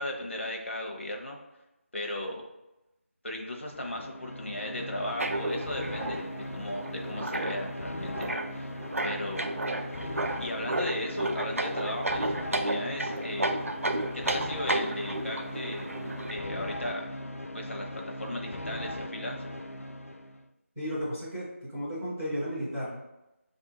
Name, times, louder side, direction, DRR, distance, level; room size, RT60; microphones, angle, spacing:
voice 1, 0.0-1.4 1.9-2.4 3.2-8.8 9.0-9.6 9.9-13.6 14.1-15.9 16.3-17.1 17.5-19.4, left 1 dB, 60° left, 1 dB, 0.9 m, -36 dB
sound 1, 3.6-20.4, left 1 dB, 75° left, 0.4 m, -39 dB
sound 2, 5.2-16.3, right 1 dB, 75° right, 0.4 m, -33 dB
voice 2, 20.8-21.5 21.7-23.1, equal, 5° right, -16 dB, 0.5 m, -33 dB
4.2 x 2.7 x 4.0 m, 0.96 s
figure-of-eight pair, 165°, 8 cm